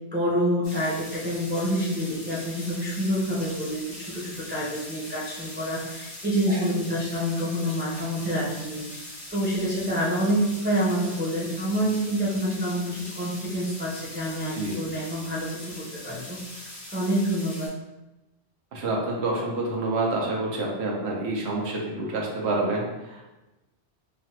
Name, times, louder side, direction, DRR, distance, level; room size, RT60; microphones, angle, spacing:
voice 1, 0.1-9.0 9.3-17.7, equal, 15° right, -8 dB, 0.3 m, -27 dB
sound 1, 0.6-17.7, left 1 dB, 80° left, 1.4 m, -41 dB
voice 2, 18.7-23.2, right 2 dB, 75° right, -2 dB, 0.9 m, -28 dB
3.2 x 2.3 x 2.8 m, 1.0 s
omnidirectional pair, 1.2 m